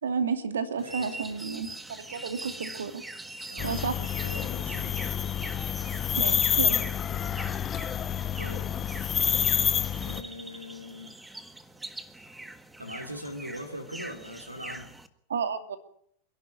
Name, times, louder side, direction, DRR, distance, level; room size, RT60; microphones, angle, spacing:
voice 1, 0.0-3.0 3.6-3.9 6.2-6.8 15.3-15.8, right 6 dB, 65° right, 9 dB, 2.6 m, -31 dB
sound 1, 0.8-15.1, right 2 dB, 5° right, 1.6 m, -43 dB
voice 2, 0.8-1.4 3.5-5.1 8.4-8.7 10.0-11.2 12.8-14.9, equal, 85° right, 8 dB, 2.7 m, -41 dB
sound 2, 3.6-10.2, left 8 dB, 25° left, 1.2 m, -28 dB
27.5 x 11.5 x 9.9 m, 0.69 s
figure-of-eight pair, 90°, 0 cm